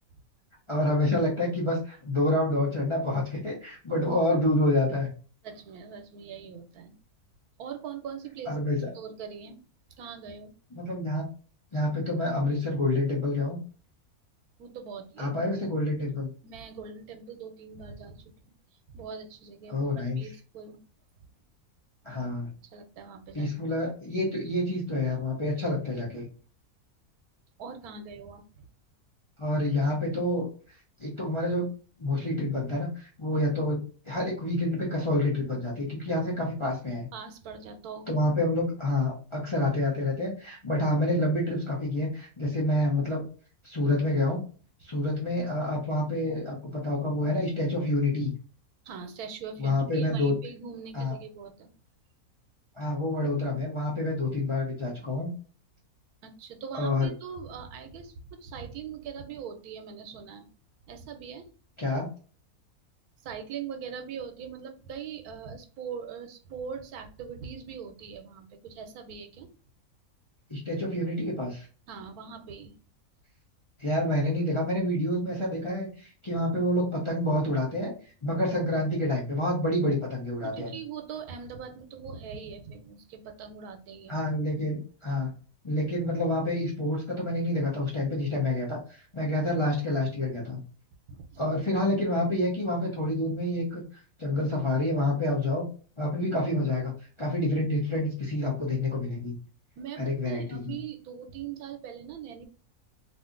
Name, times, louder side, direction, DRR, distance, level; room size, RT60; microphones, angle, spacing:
voice 1, 0.7-5.1 8.5-8.9 10.8-11.3 11.7-13.6 15.2-16.3 19.7-20.2 22.0-22.5 23.3-26.3 29.4-30.5 31.0-31.7 32.0-37.1 38.1-43.2 43.6-44.4 44.8-48.3 49.6-50.3 50.9-51.1 52.8-55.3 56.8-57.1 61.8-62.1 70.5-71.7 73.8-77.9 78.2-80.7 84.1-85.3 85.6-88.8 89.1-90.6 91.4-93.8 94.2-95.6 96.0-96.9 97.2-99.3 100.0-100.8, left 1 dB, 30° left, -4 dB, 0.6 m, -28 dB
voice 2, 5.4-7.0 7.6-8.5 8.9-9.6 10.0-10.5 14.6-15.3 16.4-18.5 18.9-20.8 22.6-23.5 27.6-28.7 37.1-38.2 48.8-51.7 56.2-60.5 60.9-61.5 63.2-69.5 71.9-72.8 80.4-84.2 84.5-84.6 91.1-91.4 99.8-102.5, right 6 dB, 90° right, 7 dB, 1.2 m, -41 dB
2.7 x 2.5 x 3.7 m, 0.39 s
omnidirectional pair, 1.5 m